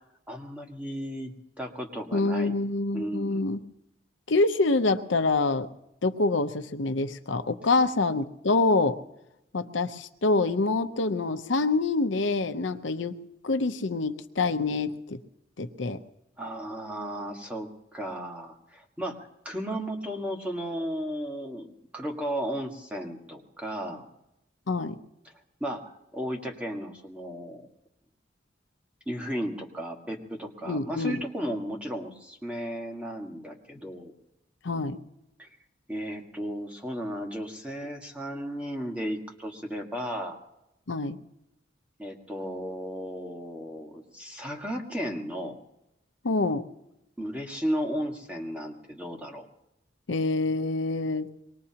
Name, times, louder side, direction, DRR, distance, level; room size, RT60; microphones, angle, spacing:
voice 1, 0.3-1.3 1.6-2.6 2.9-3.4 16.4-21.7 21.9-24.1 25.3-25.4 25.6-27.7 29.1-34.1 35.4-35.5 35.9-40.4 42.0-45.5 47.2-49.5, equal, 5° right, 1 dB, 1.7 m, -34 dB
voice 2, 2.1-3.6 4.3-5.7 6.0-9.0 9.5-13.2 13.4-15.2 15.6-16.0 24.7-25.0 30.7-31.2 34.6-35.0 40.9-41.2 46.2-46.6 50.1-51.3, left 3 dB, 85° left, 8 dB, 0.8 m, -26 dB
24.0 x 20.0 x 2.9 m, 0.88 s
head